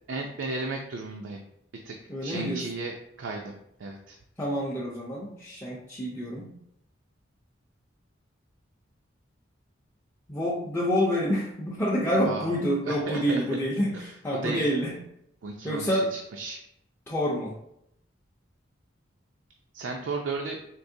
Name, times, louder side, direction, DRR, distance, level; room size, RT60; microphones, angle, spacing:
voice 1, 0.1-1.4 1.8-3.5 3.8-4.2 12.2-12.5 12.9-13.4 13.9-14.6 15.4-16.6 19.7-20.6, right 3 dB, 80° right, 2 dB, 0.4 m, -34 dB
voice 2, 2.1-2.6 4.4-6.5 10.3-14.9 15.6-16.1 17.1-17.5, equal, 15° left, -6 dB, 0.5 m, -27 dB
4.6 x 2.8 x 2.6 m, 0.77 s
head